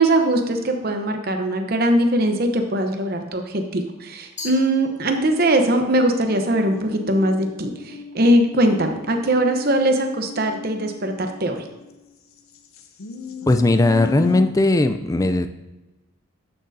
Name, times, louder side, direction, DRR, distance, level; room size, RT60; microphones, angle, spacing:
voice 1, 0.0-11.6, right 1 dB, 45° right, 5 dB, 0.8 m, -21 dB
Glass, 4.4-5.6, left 3 dB, 35° left, 1.6 m, -38 dB
sound 1, 6.1-11.9 12.5-14.4, left 5 dB, 85° left, 0.7 m, -35 dB
voice 2, 13.5-15.5, left 2 dB, 15° left, 8 dB, 0.3 m, -18 dB
11.5 x 6.5 x 2.7 m, 1.1 s
head